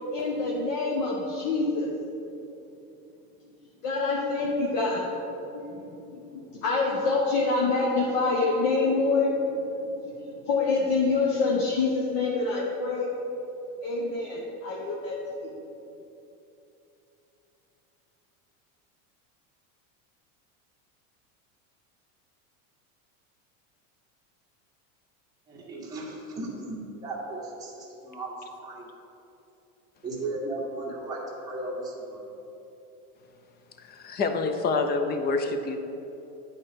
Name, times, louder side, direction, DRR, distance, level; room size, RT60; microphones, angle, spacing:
voice 1, 0.1-2.0 3.8-5.3 5.5-13.1 13.8-15.2 15.4-15.5, left 3 dB, 60° left, -4 dB, 1.3 m, -26 dB
voice 2, 25.5-26.8 27.0-28.3 28.6-28.9 30.0-32.2, right 2 dB, 10° right, -6 dB, 1.6 m, -35 dB
voice 3, 33.8-35.8, left 3 dB, 25° left, 6 dB, 0.5 m, -27 dB
9.7 x 4.3 x 5.1 m, 2.9 s
supercardioid pair, 135°, 43 cm